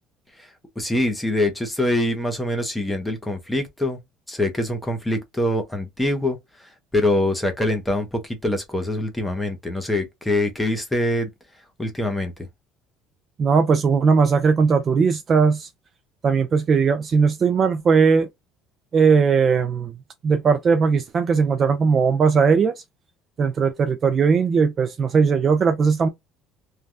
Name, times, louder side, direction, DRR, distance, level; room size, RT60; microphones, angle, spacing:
voice 1, 0.8-4.0 4.3-6.4 6.9-11.3 11.8-12.3, left 1 dB, 5° left, 0.7 m, -24 dB
voice 2, 13.4-15.7 16.2-18.3 18.9-19.9 20.2-22.7 23.4-26.1, right 5 dB, 30° right, 0.4 m, -18 dB
3.2 x 2.3 x 2.6 m
cardioid pair, 150°, 0 cm